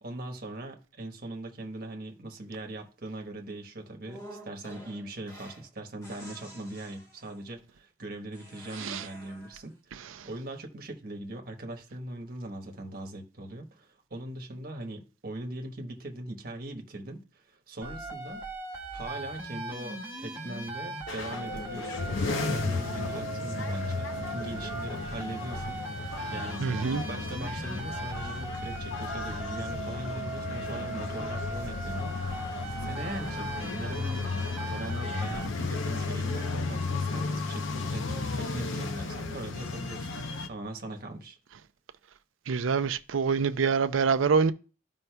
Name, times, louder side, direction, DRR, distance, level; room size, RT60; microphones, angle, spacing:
voice 1, 0.0-18.4 18.9-26.6 26.9-32.1 32.8-34.3 34.7-40.1 40.5-41.4, right 1 dB, 50° right, 1.1 m, -40 dB
sound 1, 4.1-5.7 6.0-7.5 8.3-9.7, right 1 dB, 15° left, 1.2 m, -49 dB
voice 2, 8.7-9.1 10.0-10.3 26.6-27.0 42.5-44.5, right 5 dB, 90° right, 0.5 m, -26 dB
sound 2, 17.8-35.5, right 2 dB, 10° right, 1.3 m, -39 dB
sound 3, 21.1-40.5, left 3 dB, 80° left, 0.7 m, -34 dB
13.5 x 5.3 x 2.3 m
head